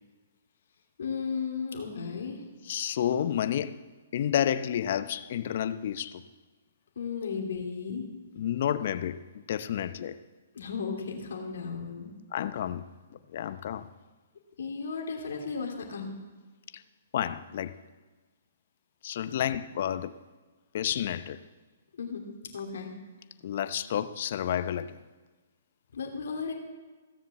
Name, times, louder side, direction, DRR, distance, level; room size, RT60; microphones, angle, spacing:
voice 1, 1.0-2.4 6.9-8.1 10.5-12.1 14.6-16.1 21.9-22.2 22.5-22.9 25.9-26.5, left 5 dB, 75° left, 3.0 m, -35 dB
voice 2, 2.7-3.8 4.1-6.2 7.2-7.3 8.4-10.2 12.3-12.9 13.3-13.9 16.7-16.8 17.1-17.8 19.0-20.1 20.7-21.4 23.4-25.0, left 10 dB, 55° left, 0.7 m, -30 dB
16.5 x 7.3 x 7.2 m
hypercardioid pair, 145°, 0 cm